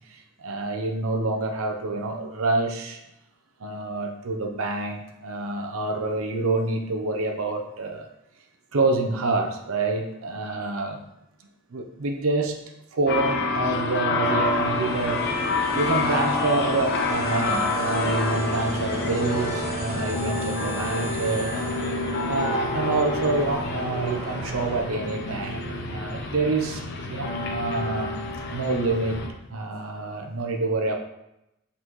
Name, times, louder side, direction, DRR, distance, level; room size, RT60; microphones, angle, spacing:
voice 1, 0.1-3.0 3.6-8.1 8.7-11.0 11.7-12.6 12.9-15.2 15.7-21.6 22.2-28.2 28.5-29.2 29.5-31.0, right 3 dB, 80° right, 3 dB, 0.7 m, -27 dB
sound 1, 13.1-29.3, left 2 dB, 50° left, 0.8 m, -28 dB
sound 2, 14.4-24.8, right 1 dB, 30° right, 0.6 m, -38 dB
sound 3, 14.7-22.4, left 1 dB, 10° right, 1.2 m, -38 dB
7.4 x 4.1 x 3.1 m, 0.86 s
head